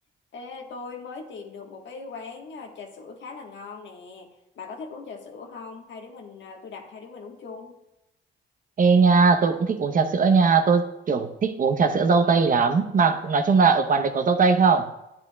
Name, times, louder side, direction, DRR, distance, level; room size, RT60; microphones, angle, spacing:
voice 1, 0.3-4.3 4.5-7.7, left 4 dB, 65° left, 3 dB, 1.3 m, -40 dB
voice 2, 8.8-14.8, right 5 dB, 45° right, 8 dB, 0.8 m, -20 dB
10.5 x 8.3 x 2.3 m, 0.90 s
cardioid pair, 90°, 20 cm